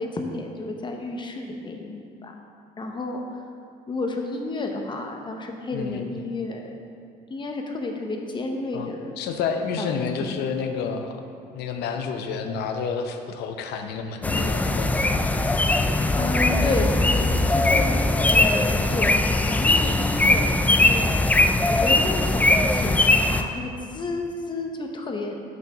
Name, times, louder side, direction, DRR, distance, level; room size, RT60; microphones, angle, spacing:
voice 1, 0.0-2.3 2.8-3.4 3.9-6.8 7.3-9.2 9.8-9.9 10.2-10.5 16.1-21.1 21.7-25.4, left 2 dB, 25° left, 3 dB, 0.9 m, -31 dB
voice 2, 5.7-6.1 8.7-8.9 9.2-11.2 11.5-15.2, left 5 dB, 80° left, 6 dB, 0.7 m, -29 dB
sound 1, 14.2-23.4, left 2 dB, 10° left, 0.3 m, -20 dB
6.7 x 4.4 x 6.0 m, 2.4 s
cardioid pair, 110°, 17 cm